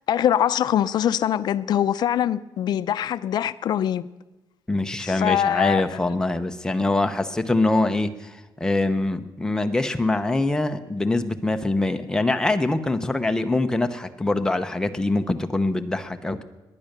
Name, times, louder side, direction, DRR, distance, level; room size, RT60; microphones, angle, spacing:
voice 1, 0.1-4.0 5.0-5.9, left 10 dB, 60° left, 0.5 m, -23 dB
voice 2, 4.7-16.4, left 2 dB, 10° left, 0.7 m, -24 dB
19.5 x 10.0 x 6.7 m
wide cardioid pair, 180°, 8 cm